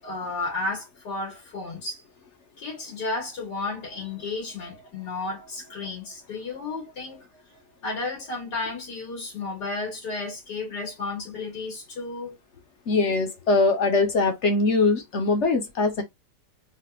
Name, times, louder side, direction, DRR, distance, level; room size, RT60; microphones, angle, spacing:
voice 1, 0.0-2.0 2.6-7.3 7.8-12.4, left 3 dB, 85° left, 2.3 m, -33 dB
voice 2, 12.9-16.0, left 3 dB, 50° left, 1.1 m, -22 dB
4.2 x 2.4 x 2.3 m
omnidirectional pair, 1.7 m